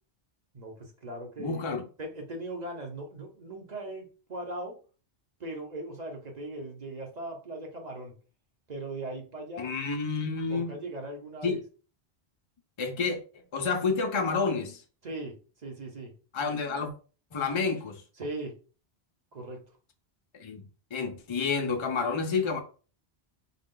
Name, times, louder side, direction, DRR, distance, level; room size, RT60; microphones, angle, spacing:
voice 1, 0.5-1.6 2.0-4.7 5.4-8.1 8.7-9.7 10.5-11.6 15.0-15.3 15.6-16.1 18.2-18.5 19.3-19.6, right 2 dB, 45° right, 1.0 m, -39 dB
voice 2, 1.4-1.8 9.6-10.7 11.4-11.6 12.8-13.2 13.5-14.8 16.3-16.9 17.3-18.0 20.3-22.6, left 4 dB, 35° left, 0.5 m, -29 dB
3.7 x 2.4 x 3.8 m
omnidirectional pair, 1.1 m